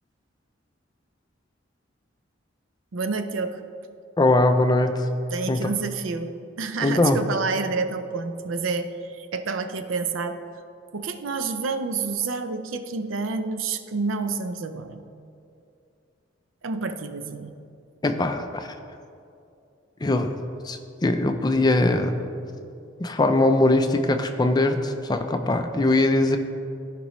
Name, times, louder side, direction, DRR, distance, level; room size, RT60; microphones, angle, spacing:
voice 1, 2.9-3.6 5.3-10.4 10.9-15.0 16.6-17.5, right 4 dB, 85° right, 9 dB, 0.5 m, -29 dB
voice 2, 4.2-5.1 5.5-5.7 6.8-7.2 18.0-18.7 20.0-20.3 20.6-22.3 23.0-26.4, left 2 dB, 20° left, 7 dB, 0.4 m, -21 dB
14.5 x 5.2 x 3.1 m, 2.5 s
head